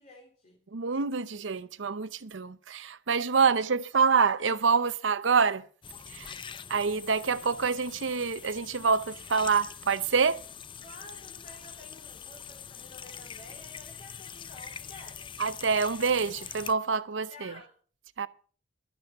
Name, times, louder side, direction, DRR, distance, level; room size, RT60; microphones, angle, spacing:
voice 1, 0.0-0.6 10.8-15.3 17.3-17.7, left 2 dB, 45° left, 2.7 m, -51 dB
voice 2, 0.7-5.6 6.1-6.3 6.7-10.4 15.4-17.5 18.2-18.3, right 5 dB, 90° right, 0.7 m, -26 dB
sound 1, 5.8-16.7, left 7 dB, 25° left, 0.5 m, -44 dB
12.5 x 10.5 x 5.4 m
head